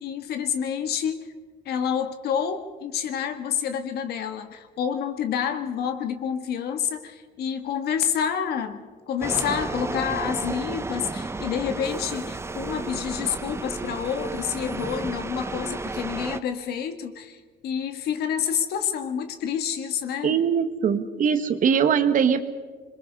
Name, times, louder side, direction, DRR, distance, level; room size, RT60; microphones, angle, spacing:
voice 1, 0.0-1.3 1.7-20.4, left 8 dB, 70° left, 8 dB, 1.8 m, -28 dB
sound 1, 9.2-16.4, right 3 dB, 15° right, 0.8 m, -32 dB
voice 2, 20.2-22.4, right 7 dB, 50° right, 9 dB, 1.5 m, -21 dB
26.5 x 22.5 x 5.5 m, 1.5 s
cardioid pair, 110°, 17 cm